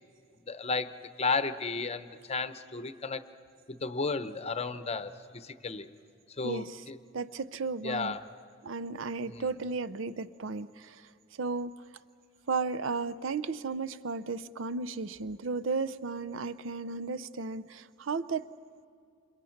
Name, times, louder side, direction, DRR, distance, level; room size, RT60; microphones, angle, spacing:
voice 1, 0.5-3.2 3.7-5.9 6.4-7.0 7.8-8.2 9.3-9.5, left 4 dB, 30° left, 11 dB, 0.8 m, -33 dB
voice 2, 6.4-6.8 7.1-8.2 8.6-11.8 12.5-18.5, right 4 dB, 75° right, 15 dB, 0.6 m, -34 dB
28.5 x 27.5 x 5.9 m, 2.4 s
head